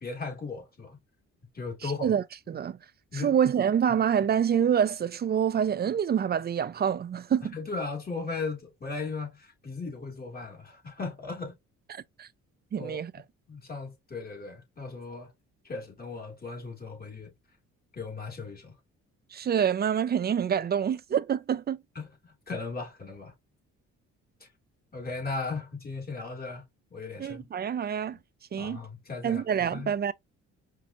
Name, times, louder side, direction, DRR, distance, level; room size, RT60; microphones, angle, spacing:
voice 1, 0.0-1.0 1.5-2.1 3.1-3.4 3.9-4.0 7.5-11.5 12.8-13.0 13.5-15.3 15.6-17.3 17.9-18.7 21.9-23.3 24.4-24.5 24.9-26.6 26.9-27.4 28.6-29.9, left 4 dB, 30° left, 2.8 m, -37 dB
voice 2, 1.8-2.8 3.1-7.6 11.9-12.3 12.7-13.1 19.3-21.8 27.2-28.2 28.5-28.8 29.2-30.1, right 8 dB, 35° right, 0.4 m, -27 dB
5.1 x 2.8 x 2.4 m
cardioid pair, 90°, 30 cm